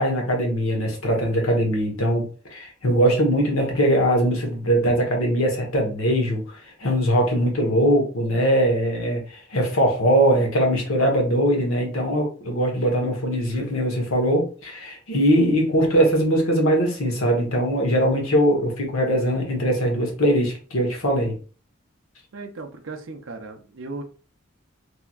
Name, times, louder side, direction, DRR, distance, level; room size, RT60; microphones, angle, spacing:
voice 1, 0.0-21.4, equal, 80° left, 1.1 m, -21 dB
voice 2, 22.3-24.0, right 3 dB, 60° right, 0.5 m, -36 dB
3.3 x 2.8 x 2.3 m
head